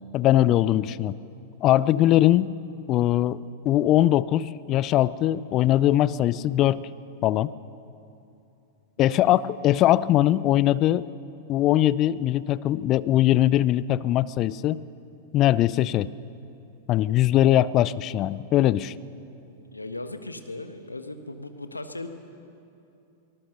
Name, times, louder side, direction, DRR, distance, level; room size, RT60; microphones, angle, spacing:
voice 1, 0.1-1.1 1.6-2.5 2.9-6.8 7.2-7.5 9.0-11.1 11.5-14.8 15.3-16.1 16.9-18.9, left 13 dB, 35° left, 19 dB, 0.5 m, -21 dB
voice 2, 9.0-9.3 19.7-22.1, left 2 dB, 85° left, 8 dB, 1.4 m, -37 dB
24.0 x 18.5 x 6.7 m, 2.7 s
figure-of-eight pair, 95°, 0 cm